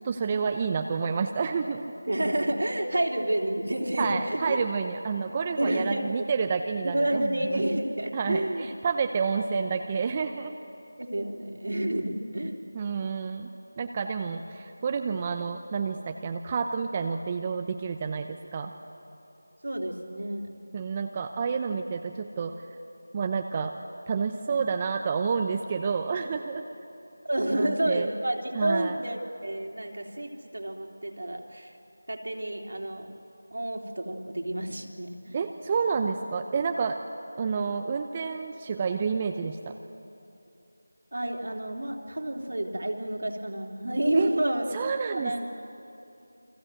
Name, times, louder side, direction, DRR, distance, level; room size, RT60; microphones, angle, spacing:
voice 1, 0.0-1.8 2.9-3.0 4.0-7.6 8.1-10.5 12.7-13.5 13.8-18.7 20.7-22.5 23.1-23.7 24.1-26.6 27.5-28.1 28.5-29.0 35.3-37.0 37.3-39.7 44.1-44.3 44.7-45.5, right 5 dB, 20° right, 6 dB, 0.8 m, -29 dB
voice 2, 2.1-4.6 5.6-6.1 6.9-8.7 11.0-12.6 19.6-20.6 27.2-31.7 32.1-33.1 33.5-35.4 41.1-45.5, right 1 dB, 70° right, 2 dB, 3.2 m, -29 dB
29.0 x 23.5 x 7.8 m, 2.8 s
figure-of-eight pair, 170°, 0 cm